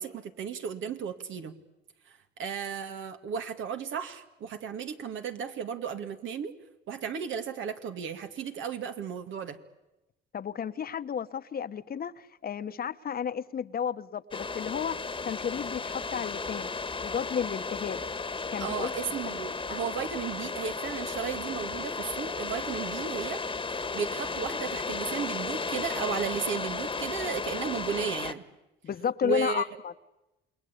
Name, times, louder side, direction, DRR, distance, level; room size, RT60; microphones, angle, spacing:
voice 1, 0.0-1.5 2.1-6.5 6.9-9.6 18.6-23.4 23.7-28.4 29.2-29.6, right 7 dB, 75° right, 7 dB, 2.2 m, -34 dB
voice 2, 10.3-16.7 17.0-18.0 18.5-19.1 19.7-19.8 28.8-29.9, left 7 dB, 50° left, 12 dB, 1.1 m, -32 dB
sound 1, 14.3-28.3, left 4 dB, 25° left, 1.4 m, -34 dB
28.5 x 21.0 x 8.5 m, 0.96 s
cardioid pair, 90°, 20 cm